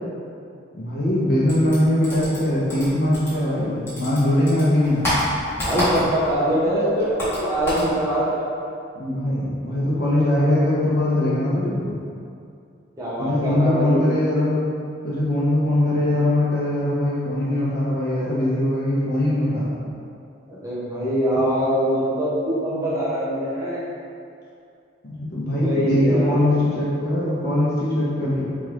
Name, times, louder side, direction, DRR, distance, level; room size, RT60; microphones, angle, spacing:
voice 1, 0.7-5.1 8.9-12.0 13.2-14.6 15.0-19.8 25.0-28.5, left 1 dB, 50° left, -7 dB, 0.9 m, -21 dB
sound 1, 1.5-3.6 3.9-6.4 6.6-7.9, left 1 dB, 10° left, 1.2 m, -27 dB
voice 2, 5.6-8.4 13.0-14.1 20.5-23.8 25.4-26.4, equal, 15° right, -9 dB, 0.7 m, -23 dB
4.5 x 3.1 x 2.5 m, 2.5 s
head